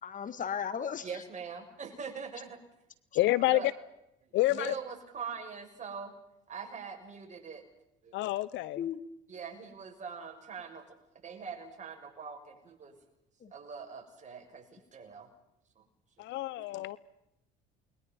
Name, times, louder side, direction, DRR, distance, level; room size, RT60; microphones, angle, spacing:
voice 1, 0.0-1.2 8.8-9.0 13.4-13.5, left 8 dB, 40° left, 12 dB, 2.0 m, -36 dB
voice 2, 1.0-2.6 3.5-3.7 4.5-6.1 6.5-7.6 8.0-8.1 9.3-11.0 11.2-13.0 13.5-15.3 16.6-16.7, right 6 dB, 40° right, 4 dB, 6.4 m, -43 dB
voice 3, 3.1-3.7 4.3-4.7 8.1-8.8 16.2-17.0, left 16 dB, 70° left, 19 dB, 1.0 m, -28 dB
29.5 x 22.0 x 5.4 m, 0.85 s
supercardioid pair, 85°, 20 cm